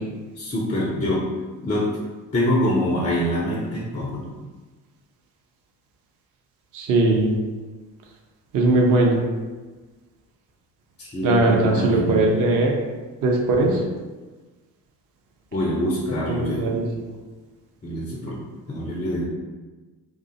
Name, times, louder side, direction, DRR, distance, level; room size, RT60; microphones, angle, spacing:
voice 1, 0.4-1.3 1.6-1.9 2.3-4.3 11.0-12.3 13.6-13.8 15.5-16.7 17.8-18.4 18.7-19.2, left 1 dB, 15° left, -3 dB, 0.3 m, -25 dB
voice 2, 6.7-7.3 8.5-9.2 11.2-12.7 13.2-13.8 16.3-17.1, right 2 dB, 40° right, 0 dB, 0.6 m, -20 dB
2.4 x 2.1 x 2.7 m, 1.3 s
hypercardioid pair, 50°, 49 cm